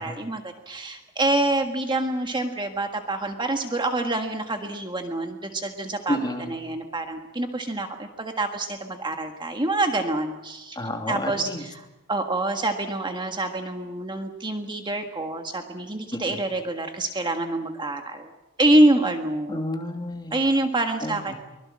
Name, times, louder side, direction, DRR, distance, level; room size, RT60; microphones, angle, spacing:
voice 1, 0.0-10.8 11.1-18.3 18.6-19.6 20.3-21.3, right 2 dB, 20° right, 4 dB, 1.6 m, -26 dB
voice 2, 6.1-6.6 10.7-11.6 16.3-16.4 19.5-20.4 21.0-21.3, left 1 dB, 20° left, 3 dB, 3.0 m, -30 dB
24.0 x 21.5 x 7.5 m, 1.1 s
head